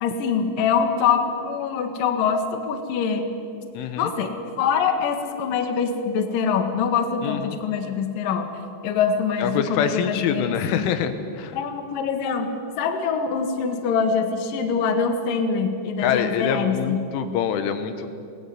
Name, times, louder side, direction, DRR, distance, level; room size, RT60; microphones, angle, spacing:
voice 1, 0.0-3.3 4.0-8.5 8.8-11.0 11.5-12.5 12.8-17.0, left 6 dB, 55° left, 6 dB, 2.9 m, -24 dB
voice 2, 3.8-4.1 7.2-7.6 9.4-11.6 16.0-18.1, left 8 dB, 85° left, 9 dB, 3.7 m, -25 dB
22.0 x 19.5 x 9.7 m, 2.4 s
omnidirectional pair, 5.5 m